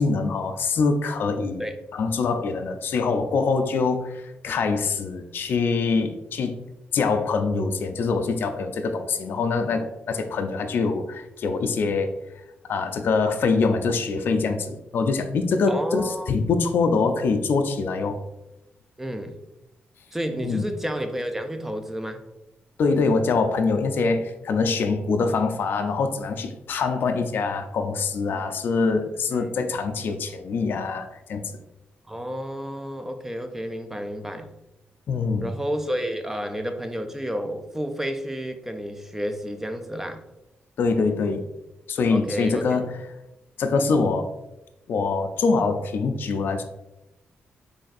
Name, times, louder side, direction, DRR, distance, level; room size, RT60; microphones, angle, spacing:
voice 1, 0.0-1.6 1.9-6.5 6.9-12.1 12.6-18.2 20.4-20.7 22.8-31.6 35.1-35.5 40.8-41.4 41.9-42.9 43.6-44.3 44.9-46.6, left 4 dB, 65° left, 6 dB, 0.4 m, -24 dB
voice 2, 15.7-16.3 19.0-19.4 20.1-22.2 29.3-29.5 32.1-34.5 35.4-40.2 42.1-42.8, equal, 10° right, 7 dB, 0.4 m, -31 dB
3.9 x 3.2 x 2.5 m, 0.92 s
cardioid pair, 100°, 4 cm